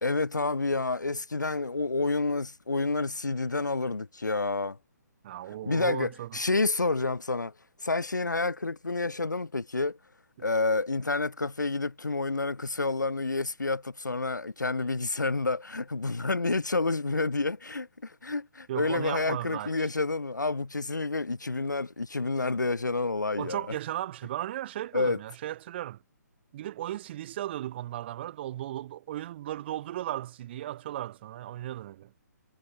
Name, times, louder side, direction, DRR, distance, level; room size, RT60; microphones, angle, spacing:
voice 1, 0.0-4.8 5.6-7.5 7.8-10.0 10.4-23.6 24.9-25.2, left 3 dB, 90° left, 0.5 m, -29 dB
voice 2, 5.2-6.4 18.7-19.7 23.4-26.0 26.5-32.1, right 13 dB, 35° right, 0.9 m, -36 dB
figure-of-eight pair, 135°, 10 cm